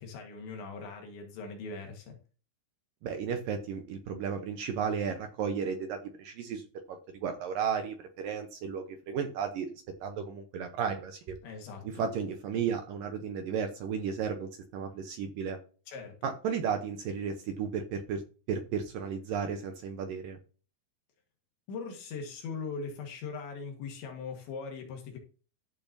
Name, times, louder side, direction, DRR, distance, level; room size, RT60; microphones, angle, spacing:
voice 1, 0.0-2.2 11.4-12.0 15.9-16.2 21.7-25.2, left 4 dB, 80° left, 2 dB, 4.0 m, -40 dB
voice 2, 3.0-11.4 11.8-15.6 16.2-18.2 18.5-20.4, right 6 dB, 75° right, 6 dB, 2.1 m, -34 dB
14.0 x 7.0 x 2.8 m, 0.36 s
omnidirectional pair, 5.2 m